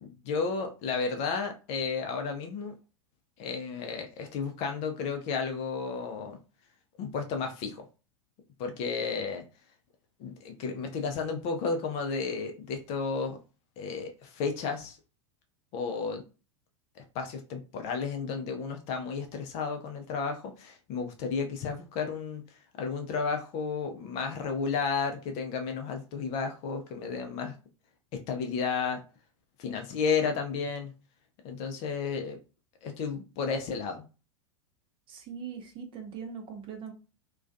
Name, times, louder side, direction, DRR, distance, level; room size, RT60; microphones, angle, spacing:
voice 1, 0.0-2.7 3.4-6.4 7.0-7.8 8.6-9.4 10.2-13.4 13.8-15.0 15.7-16.2 17.0-22.4 22.8-27.6 28.1-29.0 29.6-30.9 31.4-32.4 32.8-34.0, left 5 dB, 40° left, 0.5 m, -32 dB
voice 2, 35.1-36.9, right 7 dB, 35° right, 0.7 m, -41 dB
2.3 x 2.2 x 2.5 m
figure-of-eight pair, 90°, 16 cm